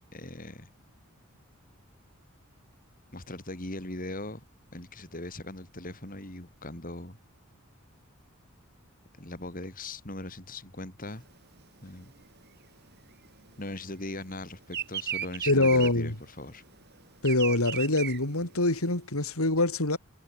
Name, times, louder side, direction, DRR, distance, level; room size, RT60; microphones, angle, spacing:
voice 1, 0.1-0.7 3.1-4.4 4.7-7.2 9.2-11.2 11.8-12.1 13.6-16.6, left 2 dB, 40° left, 3.9 m, -40 dB
Bird vocalization bird call bird song, 11.1-14.0 14.3-19.0, right 10 dB, 50° right, 5.0 m, -36 dB
voice 2, 15.5-16.1 17.2-20.0, left 2 dB, 80° left, 3.9 m, -25 dB
head